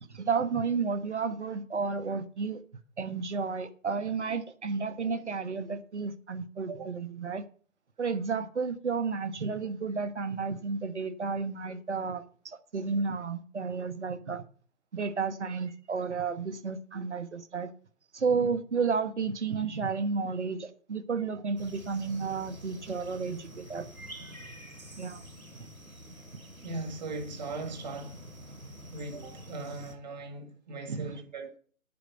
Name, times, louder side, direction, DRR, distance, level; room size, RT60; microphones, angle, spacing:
voice 1, 0.1-2.6 3.0-7.4 8.0-14.4 14.9-17.7 18.1-23.9 25.0-25.2 30.9-31.1, right 5 dB, 55° right, 1.3 m, -32 dB
sound 1, 21.6-29.9, equal, 90° right, 2.7 m, -47 dB
voice 2, 26.6-28.2 28.5-28.6 28.9-31.6, right 3 dB, 30° right, 2.0 m, -39 dB
9.3 x 5.9 x 7.8 m
figure-of-eight pair, 145°, 41 cm